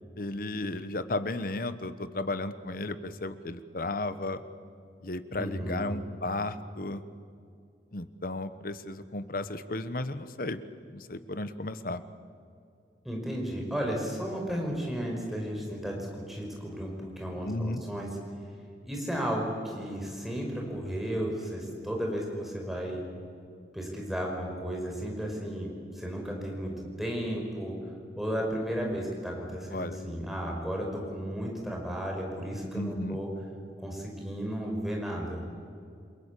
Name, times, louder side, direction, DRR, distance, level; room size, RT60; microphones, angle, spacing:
voice 1, 0.2-4.4 5.0-7.0 7.9-10.6 10.9-12.0 17.4-17.8 29.7-30.0 32.7-33.2, left 2 dB, 50° left, 12 dB, 1.2 m, -34 dB
voice 2, 5.4-5.9 13.0-18.1 18.8-23.0 23.7-25.7 25.9-27.8 28.2-33.3 33.8-35.4, equal, ahead, -1 dB, 5.3 m, -34 dB
29.0 x 22.0 x 8.4 m, 2.4 s
head